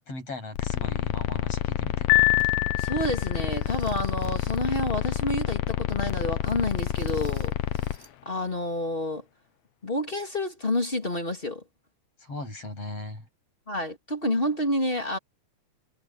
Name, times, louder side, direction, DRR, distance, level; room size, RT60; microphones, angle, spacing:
voice 1, 0.0-2.1 12.2-13.3, left 2 dB, 50° left, 9.0 m, -38 dB
sound 1, 0.6-8.0, left 12 dB, 70° left, 1.8 m, -29 dB
sound 2, 1.6-1.7 2.4-2.5 3.5-4.8 6.4-8.2 8.4-8.6 9.0-9.1, right 2 dB, 20° right, 6.1 m, -53 dB
Piano, 2.1-3.4, left 32 dB, 85° left, 2.2 m, -23 dB
voice 2, 2.8-7.5 8.3-9.2 9.8-11.6 13.7-15.2, left 1 dB, 20° left, 2.5 m, -29 dB
omnidirectional pair, 3.6 m